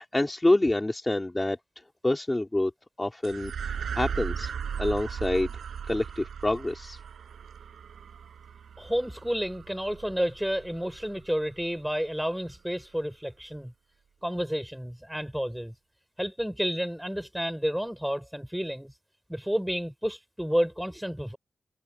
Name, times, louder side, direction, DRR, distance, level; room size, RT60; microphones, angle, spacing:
voice 1, 0.0-1.6 2.0-2.7 3.0-4.5 4.8-5.5 5.9-7.0, left 1 dB, 15° left, 3.5 m, -27 dB
sound 1, 3.2-11.9, right 7 dB, 90° right, 5.8 m, -37 dB
voice 2, 8.8-13.7 14.2-15.7 16.2-18.9 19.3-21.4, equal, ahead, 6.4 m, -30 dB
wide cardioid pair, 110°, 0 cm